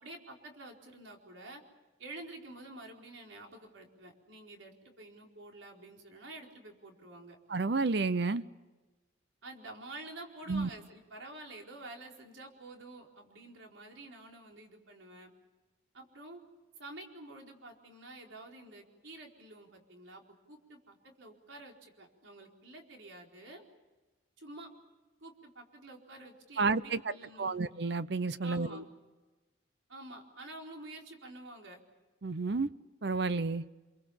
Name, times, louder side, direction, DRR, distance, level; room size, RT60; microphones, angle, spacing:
voice 1, 0.0-1.6 2.0-7.4 9.4-15.3 15.9-16.4 16.7-20.2 20.5-23.6 24.4-24.7 25.2-27.6 28.4-28.8 29.9-31.8, right 2 dB, 85° right, 4.5 m, -49 dB
voice 2, 7.5-8.4 10.5-10.7 26.6-27.0 27.4-28.8 32.2-32.7 33.0-33.6, right 3 dB, 60° right, 0.7 m, -30 dB
27.5 x 23.5 x 7.2 m
head